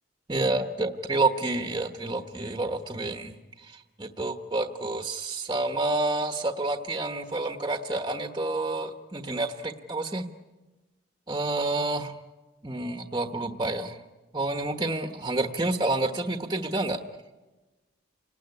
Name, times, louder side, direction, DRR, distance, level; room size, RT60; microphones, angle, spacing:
voice 1, 0.3-10.3 11.3-12.1 12.6-14.0 14.3-17.0, right 2 dB, 20° right, 6 dB, 1.2 m, -29 dB
29.5 x 19.0 x 9.8 m, 1.2 s
head